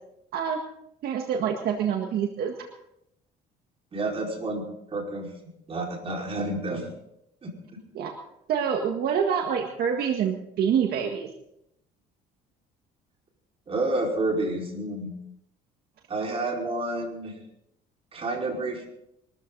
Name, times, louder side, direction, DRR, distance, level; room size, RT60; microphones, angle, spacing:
voice 1, 1.0-2.7 7.9-8.1 8.5-11.3, right 7 dB, 65° right, 3 dB, 1.8 m, -26 dB
voice 2, 3.9-4.6 4.9-5.3 5.7-6.9 7.4-7.5 13.7-15.1 16.1-17.3 18.1-18.9, right 2 dB, 35° right, 0 dB, 5.1 m, -29 dB
22.5 x 14.0 x 4.1 m, 0.79 s
cardioid pair, 110°, 17 cm